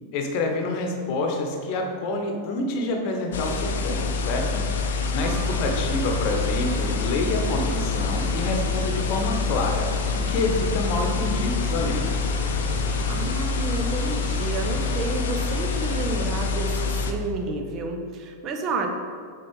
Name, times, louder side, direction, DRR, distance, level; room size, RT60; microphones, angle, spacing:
voice 1, 0.1-4.6 5.1-9.9 10.1-12.1, left 2 dB, 45° left, 3 dB, 1.0 m, -27 dB
sound 1, 3.3-17.1, left 4 dB, 60° left, 0.6 m, -26 dB
voice 2, 5.2-5.7 13.1-18.9, right 3 dB, 35° right, 4 dB, 0.7 m, -30 dB
Thunder / Rain, 5.2-16.1, right 2 dB, 70° right, 1.2 m, -36 dB
7.7 x 3.9 x 3.8 m, 2.2 s
figure-of-eight pair, 90°, 0 cm